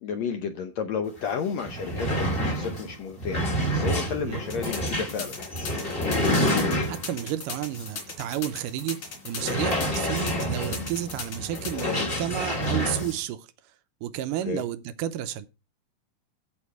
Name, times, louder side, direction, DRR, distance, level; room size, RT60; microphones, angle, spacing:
voice 1, 0.0-5.4 14.5-14.6, left 6 dB, 75° left, 1.6 m, -32 dB
sound 1, 1.2-1.3 1.5-7.3 7.7-7.9 8.3-8.4 9.3-13.2, equal, 20° left, 1.6 m, -28 dB
voice 2, 4.0-4.4 6.9-13.5 14.0-15.5, right 12 dB, 80° right, 2.1 m, -32 dB
sound 2, 4.5-11.8, left 5 dB, 55° left, 4.2 m, -37 dB
15.5 x 5.3 x 4.7 m
omnidirectional pair, 4.2 m